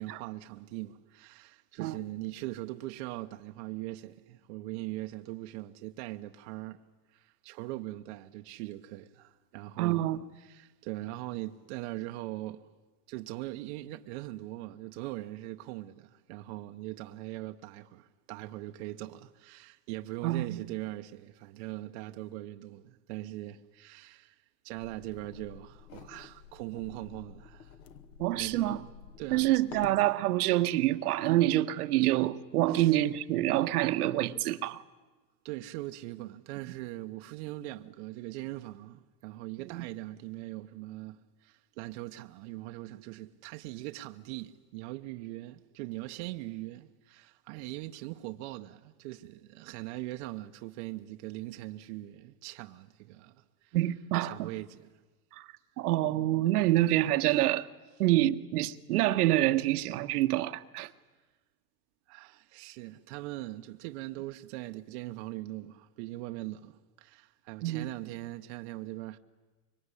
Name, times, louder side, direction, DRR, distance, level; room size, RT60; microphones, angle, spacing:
voice 1, 0.0-10.1 10.3-12.7 13.1-27.8 28.3-28.7 29.2-29.6 32.7-33.0 35.4-53.8 54.2-55.0 62.1-69.2, right 17 dB, 45° right, 0.9 m, -41 dB
voice 2, 9.8-10.2 20.2-20.6 28.2-28.8 29.3-34.8 39.7-39.8 53.7-54.5 55.3-55.5 55.8-57.7 58.0-60.9 67.6-67.9, right 15 dB, 65° right, 1.2 m, -27 dB
sound 1, 24.7-30.0, left 8 dB, 75° left, 2.3 m, -50 dB
25.5 x 23.0 x 9.8 m
supercardioid pair, 150°, 49 cm